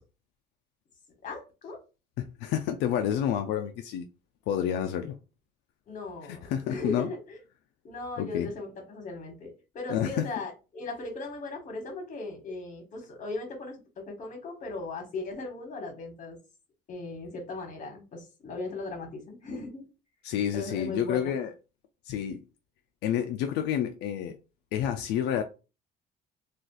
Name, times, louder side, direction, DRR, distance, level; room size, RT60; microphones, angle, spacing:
voice 1, 1.2-1.8 5.9-7.4 7.8-16.4 16.9-19.8 20.5-21.3, left 3 dB, 50° left, 1.3 m, -38 dB
voice 2, 2.2-4.0 4.5-5.2 6.3-7.1 8.2-8.5 9.9-10.2 20.2-21.5 22.1-22.4 23.0-24.4 24.7-25.4, left 10 dB, 90° left, 0.4 m, -29 dB
2.4 x 2.4 x 3.8 m
cardioid pair, 110°, 17 cm